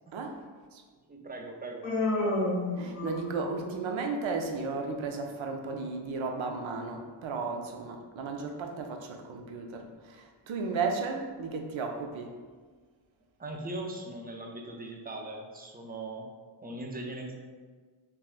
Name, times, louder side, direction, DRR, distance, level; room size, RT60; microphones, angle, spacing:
voice 1, 0.1-0.4 0.7-0.8 2.8-12.4, right 4 dB, 70° right, 0.5 m, -34 dB
voice 2, 1.1-1.9 13.4-16.3 16.6-17.4, right 2 dB, 20° right, 0.4 m, -39 dB
Human voice, 1.8-3.5, left 2 dB, 80° left, 0.8 m, -30 dB
3.5 x 2.2 x 2.4 m
cardioid pair, 60°, 49 cm